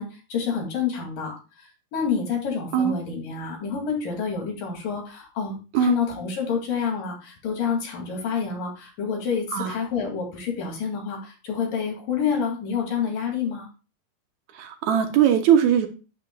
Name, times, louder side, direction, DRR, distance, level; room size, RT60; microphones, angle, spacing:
voice 1, 0.0-13.7, left 6 dB, 85° left, 1 dB, 4.1 m, -28 dB
voice 2, 14.6-15.9, right 9 dB, 70° right, 7 dB, 2.0 m, -20 dB
10.5 x 9.3 x 2.3 m, 0.33 s
omnidirectional pair, 3.8 m